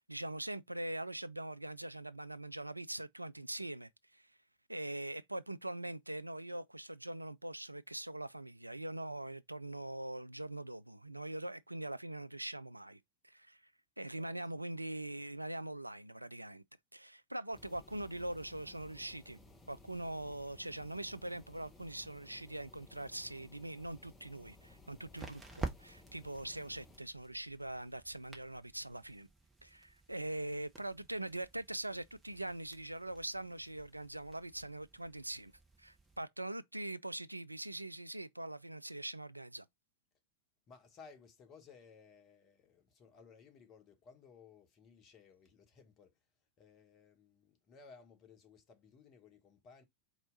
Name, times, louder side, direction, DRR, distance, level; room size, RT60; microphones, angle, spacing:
voice 1, 0.0-4.3 4.7-13.6 14.0-16.6 16.9-19.4 19.7-29.3 29.6-35.5 35.8-39.7, right 1 dB, 85° right, 0.3 m, -42 dB
voice 2, 14.1-14.7 40.7-46.2 46.6-49.8, left 5 dB, 30° left, 1.3 m, -59 dB
sound 1, 17.5-27.0, left 2 dB, 15° left, 0.9 m, -60 dB
sound 2, 23.8-36.2, right 3 dB, 10° right, 1.1 m, -51 dB
4.4 x 3.0 x 3.8 m
figure-of-eight pair, 90°, 0 cm